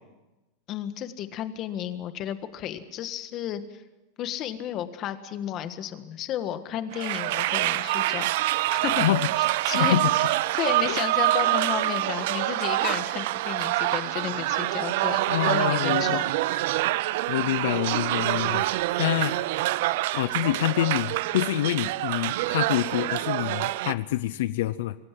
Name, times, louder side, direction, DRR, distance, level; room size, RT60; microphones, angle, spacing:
voice 1, 0.7-3.8 4.2-8.3 8.7-9.0 9.4-10.0 10.5-15.2 15.5-16.2 16.5-16.6, left 11 dB, 35° left, 10 dB, 1.6 m, -33 dB
sound 1, 6.9-23.9, right 16 dB, 65° right, 0.6 m, -26 dB
voice 2, 9.0-9.3 9.7-10.1 10.9-11.0 15.3-16.2 17.3-18.7 19.0-19.4 20.1-25.0, left 14 dB, 75° left, 15 dB, 0.7 m, -26 dB
25.0 x 16.5 x 7.6 m, 1.1 s
supercardioid pair, 155°, 0 cm